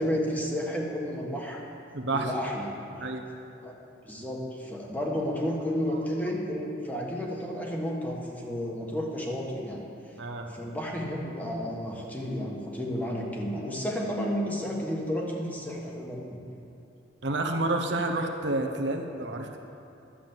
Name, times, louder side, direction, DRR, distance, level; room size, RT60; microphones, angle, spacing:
voice 1, 0.0-1.6 2.1-3.0 3.6-3.7 4.0-9.8 10.5-16.4, equal, 10° left, -2 dB, 1.4 m, -32 dB
voice 2, 1.9-2.3 3.0-3.2 10.2-10.5 17.2-19.6, right 2 dB, 65° right, 3 dB, 1.0 m, -29 dB
11.5 x 7.3 x 7.6 m, 2.7 s
head